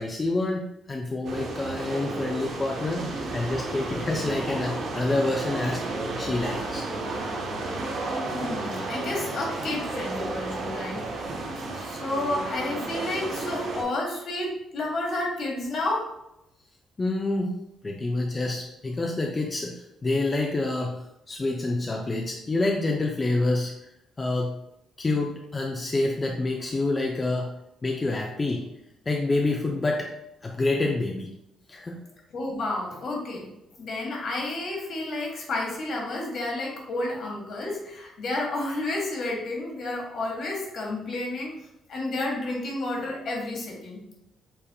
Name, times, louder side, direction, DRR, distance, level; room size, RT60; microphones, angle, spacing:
voice 1, 0.0-5.8 6.2-6.9 17.0-23.7 24.2-24.6 25.0-27.5 27.8-28.7 29.1-30.1 30.4-31.3 31.7-32.0, left 2 dB, 25° left, 0 dB, 0.5 m, -27 dB
sound 1, 1.2-13.8, right 2 dB, 70° right, 0.8 m, -32 dB
voice 2, 8.3-11.0 11.7-16.1 32.3-33.5 33.8-41.5 41.9-44.2, left 2 dB, 65° left, -1 dB, 1.5 m, -31 dB
5.5 x 3.4 x 2.3 m, 0.84 s
cardioid pair, 90°, 0 cm